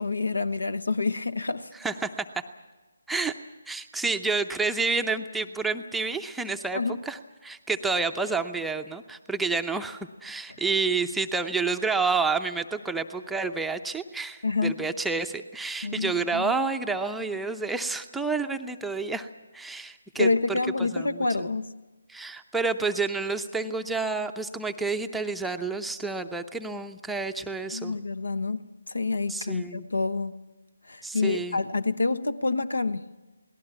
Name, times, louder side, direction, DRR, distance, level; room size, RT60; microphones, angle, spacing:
voice 1, 0.0-1.7 6.7-7.0 14.4-14.8 15.8-16.5 20.2-21.7 27.7-30.3 30.9-33.0, left 3 dB, 70° left, 1.1 m, -27 dB
voice 2, 1.8-2.3 3.1-3.3 3.7-19.3 19.5-21.5 22.1-28.0 29.3-29.8 31.0-31.6, right 4 dB, 5° right, 0.7 m, -29 dB
28.0 x 18.5 x 6.0 m
figure-of-eight pair, 145°, 0 cm